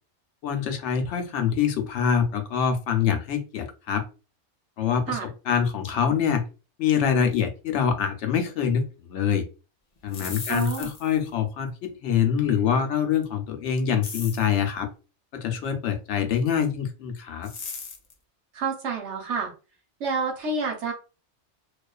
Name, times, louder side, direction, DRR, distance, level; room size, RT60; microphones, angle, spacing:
voice 1, 0.4-4.1 4.8-6.4 6.8-9.4 10.0-14.9 15.3-17.5, left 7 dB, 85° left, 6 dB, 0.9 m, -25 dB
sound 1, 10.0-11.2 14.0-14.5 17.4-18.1, left 5 dB, 50° left, 0.5 m, -37 dB
voice 2, 10.5-10.9 18.5-19.5 20.0-20.9, right 4 dB, 85° right, 1 dB, 1.1 m, -28 dB
2.4 x 2.3 x 2.2 m, 0.32 s
omnidirectional pair, 1.2 m